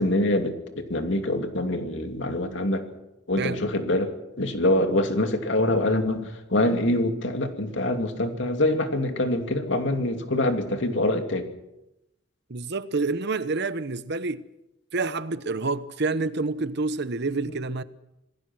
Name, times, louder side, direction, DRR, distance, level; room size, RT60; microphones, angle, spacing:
voice 1, 0.0-2.8 3.3-11.5, left 1 dB, 65° left, 2.7 m, -25 dB
voice 2, 12.5-14.4 14.9-17.8, right 3 dB, 60° right, 1.0 m, -28 dB
27.0 x 19.0 x 6.2 m
head